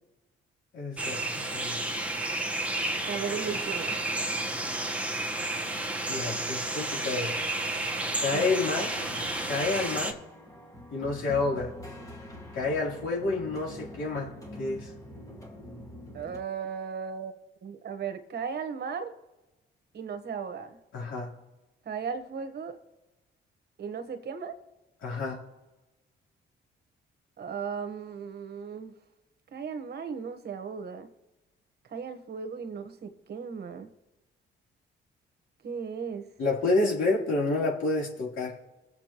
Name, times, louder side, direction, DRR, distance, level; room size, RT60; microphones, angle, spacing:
voice 1, 0.7-1.8 6.1-7.4 8.2-8.9 9.5-10.2 10.9-11.7 12.5-14.9 20.9-21.3 25.0-25.4 36.4-38.6, left 3 dB, 75° left, -3 dB, 3.4 m, -29 dB
sound 1, 1.0-10.1, right 2 dB, 5° right, 1.3 m, -31 dB
voice 2, 3.1-4.0 8.3-8.6 16.1-19.1 19.9-20.8 21.8-22.8 23.8-24.5 27.4-28.9 29.5-31.1 31.9-33.9 35.6-36.3, right 6 dB, 55° right, 7 dB, 1.2 m, -36 dB
sound 2, 8.9-16.4, left 1 dB, 15° left, 1.8 m, -45 dB
21.5 x 7.4 x 3.0 m, 1.1 s
cardioid pair, 90°, 20 cm